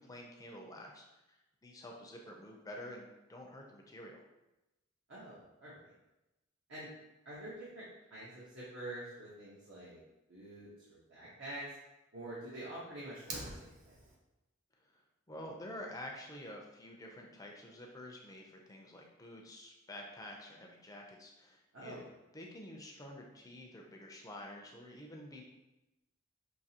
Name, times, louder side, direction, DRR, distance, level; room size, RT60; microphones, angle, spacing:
voice 1, 0.0-4.2 15.3-22.0 22.3-25.4, left 1 dB, 15° left, 0 dB, 0.5 m, -49 dB
voice 2, 5.1-5.9 6.7-6.9 7.2-7.8 8.1-10.0 10.3-11.6 12.1-13.9 21.7-22.0, right 1 dB, 60° right, -8 dB, 1.1 m, -47 dB
Fire, 13.1-14.1, right 2 dB, 40° right, 0.8 m, -45 dB
5.9 x 2.8 x 2.8 m, 0.97 s
head